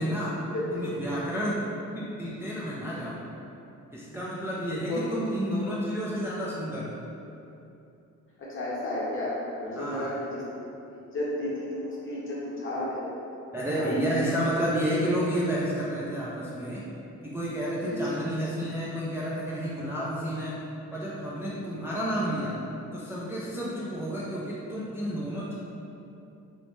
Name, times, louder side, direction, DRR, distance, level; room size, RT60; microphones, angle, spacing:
voice 1, 0.0-0.4 0.7-1.6 1.9-3.2 3.9-6.9 9.8-10.1 13.5-16.8 17.2-20.6 20.9-22.6 22.9-25.5, equal, 10° right, -7 dB, 0.3 m, -30 dB
voice 2, 0.5-1.0 4.9-5.1 8.4-9.3 9.6-10.4 10.9-13.2 13.7-14.0 17.8-18.2 23.5-23.8, left 1 dB, 45° left, -6 dB, 0.9 m, -33 dB
2.9 x 2.1 x 3.0 m, 2.8 s
cardioid pair, 90°, 30 cm